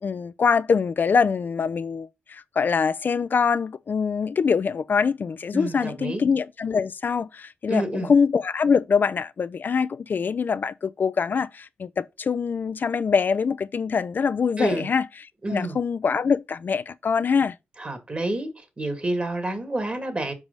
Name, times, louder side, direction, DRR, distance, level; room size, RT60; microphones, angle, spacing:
voice 1, 0.0-15.1 15.5-17.6, left 5 dB, 55° left, 0.4 m, -24 dB
voice 2, 5.5-6.2 7.7-8.1 14.6-14.9 15.4-15.8 17.8-18.5 18.8-20.3, right 1 dB, 30° right, 2.3 m, -28 dB
5.3 x 4.7 x 5.3 m
cardioid pair, 65°, 4 cm